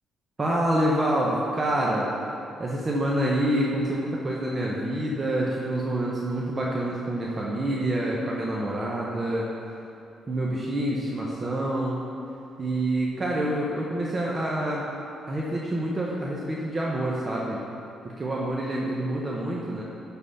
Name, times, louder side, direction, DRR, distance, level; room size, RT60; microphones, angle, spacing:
voice 1, 0.4-2.1 2.6-9.5 10.3-12.0 12.6-14.8 15.3-17.6 18.0-19.8, right 1 dB, 30° right, -4 dB, 1.1 m, -27 dB
11.0 x 4.1 x 5.6 m, 2.7 s
cardioid pair, 90°, 0 cm